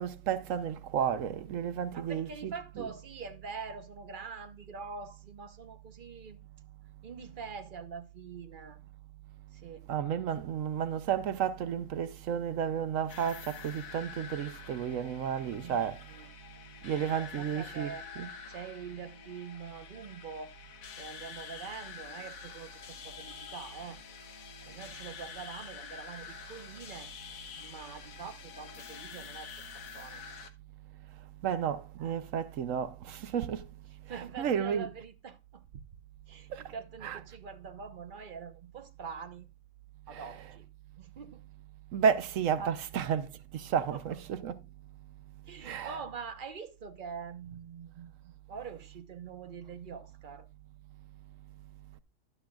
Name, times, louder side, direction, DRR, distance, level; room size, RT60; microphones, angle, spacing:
voice 1, 0.0-2.3 2.8-2.9 9.9-16.0 16.8-18.3 31.4-33.7 34.4-34.9 36.5-36.6 37.0-37.2 40.1-40.2 41.9-43.3 43.5-44.6 45.6-46.0, right 8 dB, 70° right, 1.1 m, -32 dB
voice 2, 1.9-6.4 7.0-8.8 9.5-10.2 15.6-16.3 16.9-18.1 18.5-20.5 21.0-24.0 24.7-27.1 27.6-30.2 32.0-32.1 33.9-35.6 36.3-39.5 40.1-40.7 41.0-41.4 42.6-42.7 43.8-44.2 45.4-50.5, right 5 dB, 45° right, 0.9 m, -45 dB
sound 1, 13.1-30.5, left 6 dB, 80° left, 1.4 m, -47 dB
11.5 x 8.7 x 2.3 m
omnidirectional pair, 1.4 m